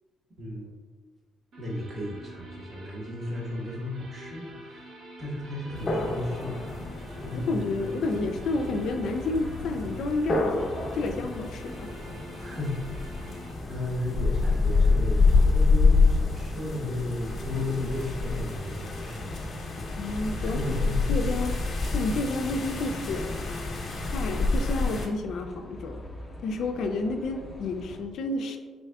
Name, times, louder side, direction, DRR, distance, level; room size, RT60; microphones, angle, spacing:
voice 1, 0.4-0.7 1.6-4.9 5.2-6.8 7.2-7.5 12.3-13.3 13.7-19.3 20.3-21.0, left 1 dB, 45° right, -3 dB, 1.2 m, -34 dB
sound 1, 1.5-13.5, equal, 70° right, 0.7 m, -47 dB
sound 2, 5.8-25.1, left 3 dB, 50° left, 0.8 m, -27 dB
voice 2, 7.3-11.9 20.0-20.6 21.1-21.6 21.9-23.4 24.1-26.0 26.4-28.6, left 2 dB, 75° left, 6 dB, 0.3 m, -30 dB
sound 3, 8.1-28.0, left 1 dB, 15° left, 0.6 m, -45 dB
4.0 x 3.5 x 2.3 m, 1.4 s
cardioid pair, 90°, 0 cm